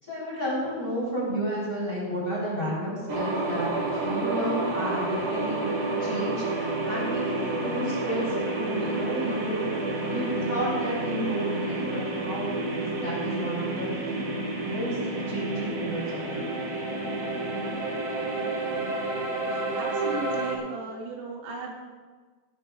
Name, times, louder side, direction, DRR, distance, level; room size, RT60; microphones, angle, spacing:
voice 1, 0.0-9.6 10.0-13.9 14.6-15.0 15.3-16.5, right 1 dB, 15° left, -5 dB, 3.9 m, -32 dB
sound 1, 3.1-20.6, right 2 dB, 65° right, 1.3 m, -30 dB
voice 2, 19.5-21.7, right 4 dB, 85° right, -3 dB, 4.9 m, -36 dB
18.0 x 15.0 x 2.5 m, 1.5 s
omnidirectional pair, 6.0 m